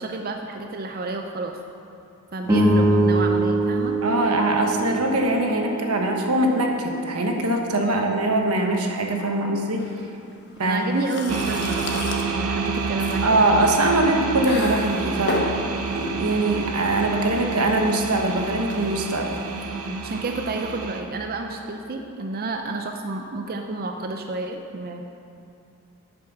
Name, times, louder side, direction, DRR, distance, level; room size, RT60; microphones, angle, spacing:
voice 1, 0.0-1.6 2.3-4.0 7.8-8.2 10.6-13.5 19.8-25.0, right 3 dB, 45° right, 4 dB, 0.5 m, -30 dB
sound 1, 2.4-7.0, right 2 dB, 15° right, 1.5 m, -23 dB
voice 2, 4.0-9.9 10.6-10.9 13.2-15.5 15.9-19.4, right 1 dB, 90° right, 2 dB, 1.2 m, -22 dB
sound 2, 9.8-20.7, left 2 dB, 50° left, 1.2 m, -35 dB
sound 3, 11.3-21.0, right 5 dB, 75° right, 0.8 m, -29 dB
9.0 x 7.8 x 6.0 m, 2.6 s
head